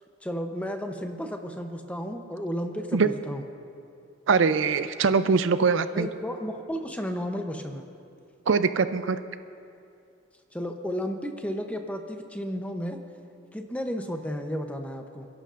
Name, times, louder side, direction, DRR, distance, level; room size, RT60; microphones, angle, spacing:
voice 1, 0.2-3.4 5.9-7.8 10.5-13.0 13.5-15.3, equal, 5° left, 4 dB, 0.7 m, -33 dB
voice 2, 4.3-6.1 8.5-9.2, right 5 dB, 70° right, 12 dB, 0.4 m, -22 dB
28.5 x 11.0 x 2.5 m, 2.4 s
head